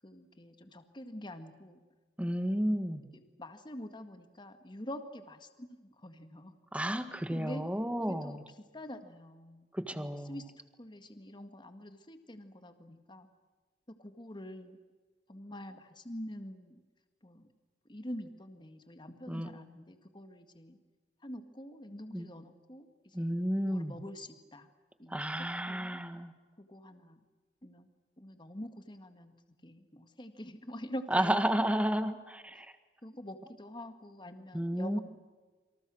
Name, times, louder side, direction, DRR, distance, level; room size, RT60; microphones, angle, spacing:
voice 1, 0.0-1.8 2.6-2.8 3.1-5.7 6.0-6.6 7.3-7.7 8.0-8.4 8.7-9.7 9.9-10.5 10.8-13.3 14.0-14.8 15.3-16.8 17.2-17.5 17.9-20.8 21.2-23.3 23.6-24.7 25.0-25.2 25.7-26.0 26.6-27.2 27.6-27.9 28.2-29.3 29.6-31.4 33.0-35.0, left 1 dB, 25° left, 8 dB, 1.8 m, -46 dB
voice 2, 2.2-3.0 6.7-8.4 9.7-10.4 19.3-19.5 22.1-22.3 23.1-24.0 25.1-26.3 31.1-32.7 34.5-35.0, right 1 dB, 10° right, 9 dB, 1.7 m, -32 dB
28.0 x 26.0 x 6.4 m, 1.3 s
head